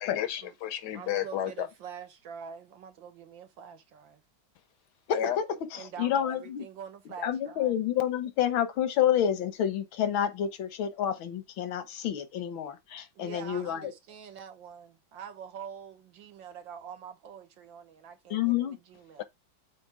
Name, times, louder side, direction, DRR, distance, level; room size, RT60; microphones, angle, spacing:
voice 1, 0.0-1.7 5.1-5.4 19.2-19.3, left 11 dB, 70° left, 1.1 m, -32 dB
voice 2, 0.9-4.2 5.8-7.8 13.2-19.2, right 7 dB, 75° right, 1.8 m, -45 dB
voice 3, 5.1-5.5 5.7-6.6 7.2-13.9 18.3-18.8, left 10 dB, 85° left, 1.7 m, -29 dB
7.9 x 2.9 x 4.8 m
omnidirectional pair, 2.1 m